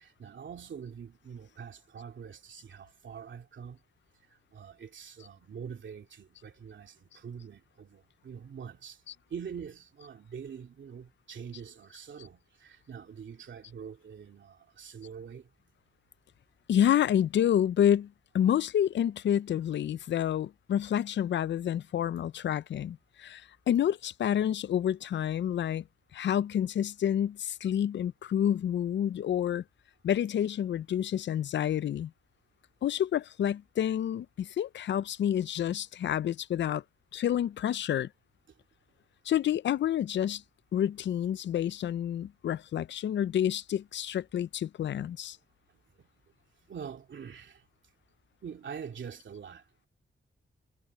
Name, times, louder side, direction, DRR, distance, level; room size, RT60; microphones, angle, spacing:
voice 1, 0.0-3.8 4.5-9.0 9.3-15.5 46.0-46.1 46.7-47.6 48.4-49.7, right 7 dB, 70° right, 2.7 m, -44 dB
voice 2, 16.7-25.8 26.1-29.6 30.0-32.1 32.8-36.8 37.1-38.1 39.3-40.4 40.7-45.4, left 10 dB, 65° left, 0.4 m, -29 dB
wide cardioid pair, 105°, 20 cm